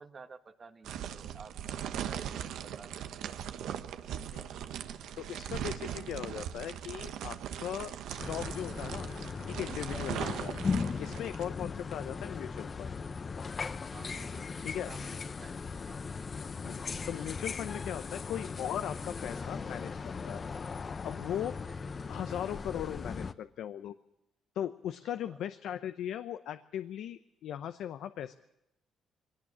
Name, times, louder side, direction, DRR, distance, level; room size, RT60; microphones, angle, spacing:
voice 1, 0.0-2.9 9.8-10.1 13.9-16.0 25.2-25.4, right 4 dB, 40° right, 7 dB, 1.4 m, -52 dB
sound 1, 0.8-11.5, right 10 dB, 85° right, 1.2 m, -39 dB
voice 2, 5.2-9.1 9.5-10.6 11.0-12.9 14.6-14.9 16.6-19.9 20.3-20.4 21.0-21.5 22.1-23.9 24.5-28.4, left 10 dB, 80° left, 10 dB, 0.7 m, -38 dB
sound 2, 8.2-23.3, left 5 dB, 40° left, 0.9 m, -38 dB
21.0 x 18.0 x 8.6 m, 0.91 s
cardioid pair, 90°, 0 cm